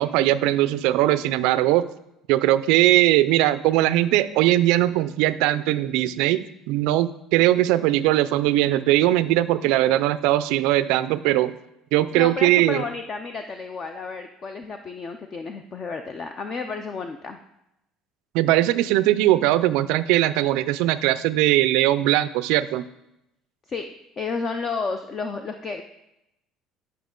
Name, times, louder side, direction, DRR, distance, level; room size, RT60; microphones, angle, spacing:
voice 1, 0.0-1.9 2.3-11.5 11.9-12.8 18.3-22.8, right 15 dB, 70° right, 15 dB, 0.3 m, -20 dB
voice 2, 12.1-17.4 23.7-23.9 24.2-25.8, left 4 dB, 25° left, 7 dB, 0.3 m, -31 dB
9.2 x 5.6 x 3.7 m, 0.86 s
cardioid pair, 175°, 0 cm